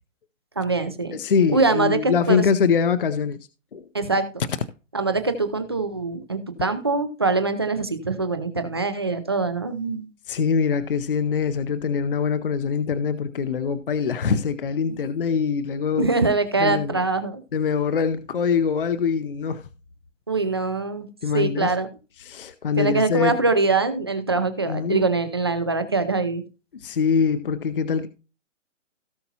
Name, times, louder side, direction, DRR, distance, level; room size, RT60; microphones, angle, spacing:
voice 1, 0.6-1.2 1.5-2.4 3.9-4.2 4.9-10.1 16.0-17.4 20.3-21.1 21.3-21.9 22.8-26.4, right 3 dB, 20° right, 0.5 m, -23 dB
voice 2, 1.1-3.4 3.7-3.9 10.3-16.1 16.6-17.0 17.5-19.6 21.2-21.7 22.2-23.4 24.7-25.0 26.7-28.1, left 6 dB, 45° left, 0.7 m, -23 dB
17.0 x 5.7 x 2.8 m
hypercardioid pair, 170°, 37 cm